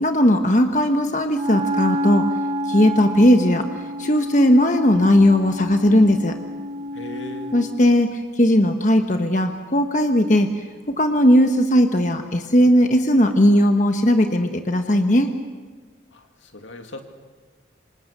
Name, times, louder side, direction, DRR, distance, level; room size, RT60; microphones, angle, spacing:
voice 1, 0.0-2.3 2.7-3.7 4.0-6.4 7.5-10.5 10.9-15.3, equal, 40° left, 6 dB, 1.2 m, -17 dB
Wind instrument woodwind instrument, 1.3-8.0, equal, 30° right, 1.0 m, -29 dB
voice 2, 6.9-7.5 16.1-17.0, left 1 dB, 85° left, 5 dB, 2.4 m, -37 dB
27.0 x 26.5 x 6.7 m, 1.4 s
head